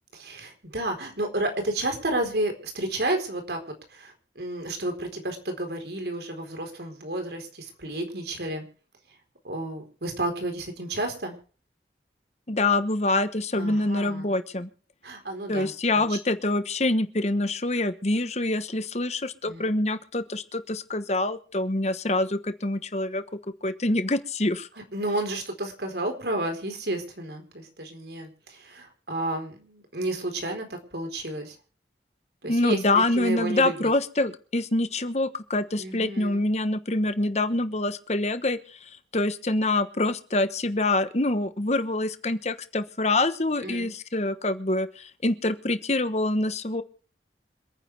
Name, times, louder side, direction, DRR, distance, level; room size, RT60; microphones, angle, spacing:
voice 1, 0.1-3.6 3.9-8.6 9.4-11.4 13.6-14.3 15.0-16.2 19.5-19.7 24.9-31.6 32.4-33.9 35.8-36.4 43.6-43.9, right 1 dB, 70° right, 5 dB, 4.2 m, -31 dB
voice 2, 12.5-14.7 15.5-23.2 23.6-24.7 32.4-46.8, left 2 dB, 40° left, 11 dB, 1.2 m, -26 dB
26.5 x 10.0 x 3.4 m, 0.40 s
head